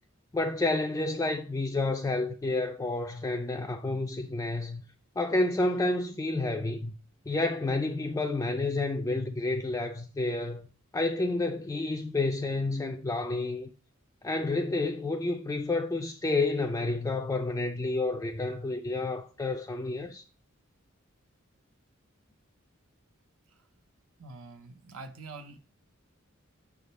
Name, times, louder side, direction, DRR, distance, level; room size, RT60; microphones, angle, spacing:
voice 1, 0.3-4.8 5.2-6.9 7.3-10.7 10.9-13.7 14.2-20.2, left 2 dB, 15° left, 0.3 m, -30 dB
voice 2, 24.2-25.6, right 3 dB, 85° right, 0.6 m, -45 dB
6.7 x 3.6 x 4.0 m
head